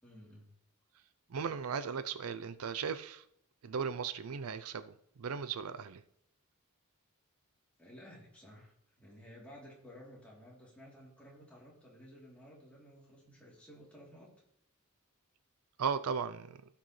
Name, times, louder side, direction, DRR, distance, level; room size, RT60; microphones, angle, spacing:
voice 1, 0.0-0.5 7.8-14.3, equal, 5° left, -5 dB, 3.2 m, -54 dB
voice 2, 1.3-3.2 3.6-6.0 15.8-16.6, right 6 dB, 75° right, 12 dB, 0.5 m, -37 dB
16.5 x 6.0 x 3.2 m, 0.74 s
head